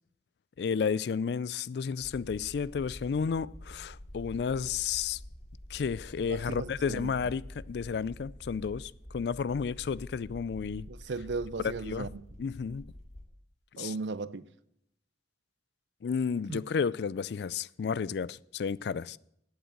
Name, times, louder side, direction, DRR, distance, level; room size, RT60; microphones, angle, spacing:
voice 1, 0.6-5.2 5.7-10.9 11.6-12.1 12.4-12.8 13.8-13.9 16.0-19.2, left 6 dB, 65° left, 0.3 m, -32 dB
sound 1, 2.0-13.2, left 1 dB, 40° left, 2.4 m, -47 dB
voice 2, 6.2-7.1 10.9-12.2 13.8-14.5 16.5-16.6, right 3 dB, 85° right, 0.6 m, -37 dB
8.8 x 8.2 x 8.9 m
head